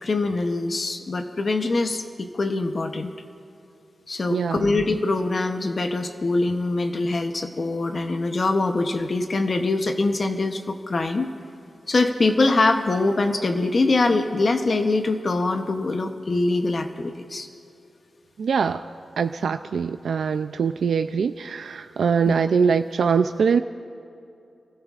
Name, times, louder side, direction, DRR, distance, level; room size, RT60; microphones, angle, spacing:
voice 1, 0.0-3.1 4.1-11.3 11.9-17.5, left 2 dB, 35° left, 6 dB, 0.8 m, -23 dB
voice 2, 4.3-4.7 18.4-18.9 19.2-23.6, right 6 dB, 85° right, 9 dB, 0.3 m, -23 dB
27.5 x 16.5 x 2.5 m, 2.6 s
wide cardioid pair, 180°, 0 cm